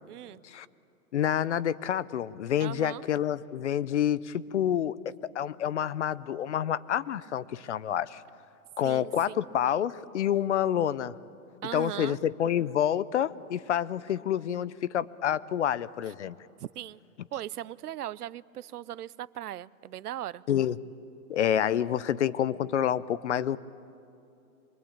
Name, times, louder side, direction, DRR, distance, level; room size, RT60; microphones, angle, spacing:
voice 1, 0.1-0.4 2.6-3.0 8.8-9.5 11.6-12.2 16.6-17.0 17.3-20.4, right 12 dB, 80° right, 20 dB, 0.7 m, -38 dB
voice 2, 1.1-5.0 5.3-8.2 8.8-11.1 11.7-16.3 20.5-20.8 21.3-23.6, left 10 dB, 50° left, 18 dB, 0.7 m, -28 dB
24.5 x 22.5 x 8.7 m, 2.8 s
hypercardioid pair, 170°, 45 cm